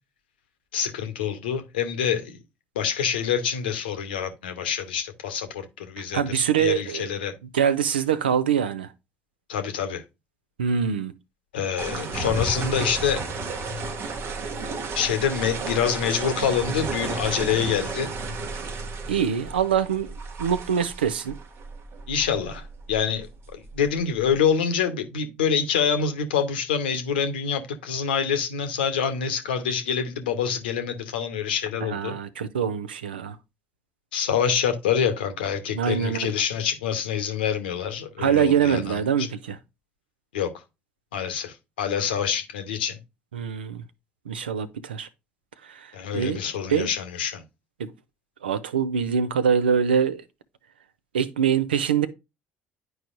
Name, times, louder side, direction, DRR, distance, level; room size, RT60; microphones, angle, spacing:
voice 1, 0.7-2.4 2.7-7.3 9.5-10.0 11.5-13.2 14.9-18.1 22.1-23.3 23.5-32.1 34.1-39.3 40.3-40.5 41.1-43.0 45.9-47.4, left 7 dB, 80° left, 0.9 m, -26 dB
voice 2, 6.1-7.1 7.5-8.9 10.6-11.1 19.1-21.4 31.8-33.4 35.7-36.3 38.2-39.6 43.3-43.8 44.3-45.1 45.6-45.9 46.1-46.4 46.7-46.9 47.8-47.9 48.4-50.2 51.1-52.1, right 7 dB, 85° right, 0.5 m, -24 dB
sound 1, 11.8-24.3, right 3 dB, 50° right, 1.0 m, -33 dB
10.0 x 4.7 x 2.5 m
hypercardioid pair, 55°, 5 cm